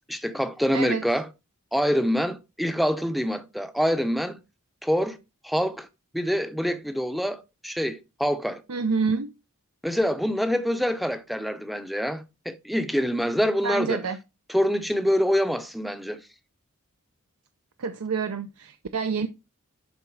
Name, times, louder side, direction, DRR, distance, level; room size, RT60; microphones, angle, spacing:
voice 1, 0.1-1.3 1.7-4.4 4.8-5.2 5.4-5.9 6.1-8.6 9.8-14.1 14.5-16.2, equal, ahead, 0.5 m, -25 dB
voice 2, 0.7-1.0 8.7-9.3 13.6-14.2 17.8-19.3, right 5 dB, 85° right, 0.6 m, -27 dB
11.5 x 4.0 x 4.7 m
head